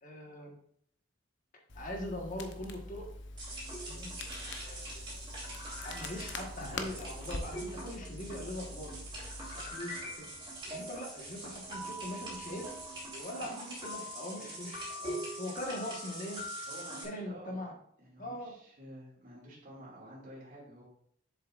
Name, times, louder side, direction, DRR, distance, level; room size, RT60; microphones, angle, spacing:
voice 1, 0.0-0.6 1.7-3.1 3.8-4.1 4.6-5.0 5.8-8.9 9.5-10.3 10.7-12.7 13.1-16.4 17.0-17.7 18.2-18.6, left 1 dB, 45° left, 1 dB, 1.4 m, -42 dB
Crackle, 1.7-9.7, left 2 dB, 65° left, 0.8 m, -44 dB
sound 1, 3.4-17.1, right 1 dB, 25° right, 3.1 m, -43 dB
sound 2, 3.9-13.2, right 1 dB, 60° right, 2.0 m, -61 dB
voice 2, 16.7-17.6 18.0-20.8, equal, 45° right, -5 dB, 2.4 m, -50 dB
7.4 x 7.2 x 2.5 m, 0.65 s
head